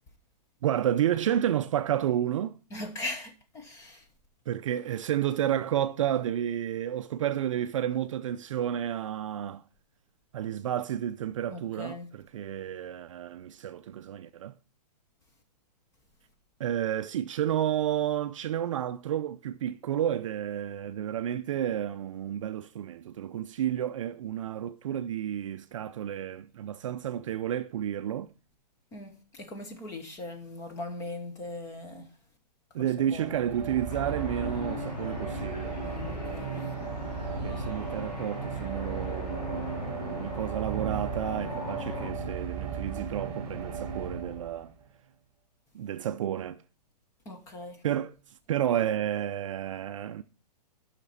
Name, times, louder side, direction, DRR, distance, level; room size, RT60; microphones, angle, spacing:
voice 1, 0.6-2.6 4.5-9.6 10.3-14.5 16.6-28.3 32.7-35.8 37.3-44.7 45.7-46.6 47.8-48.1 48.5-50.2, right 10 dB, 50° right, 0.4 m, -31 dB
voice 2, 2.7-4.1 11.5-12.1 28.9-32.1 32.8-33.5 35.8-36.5 47.2-47.8, left 2 dB, 15° left, 1.0 m, -40 dB
sound 1, 33.0-44.9, right 5 dB, 15° right, 2.9 m, -36 dB
sound 2, 33.9-42.1, left 5 dB, 80° left, 2.3 m, -40 dB
10.0 x 5.8 x 4.0 m
hypercardioid pair, 165°, 21 cm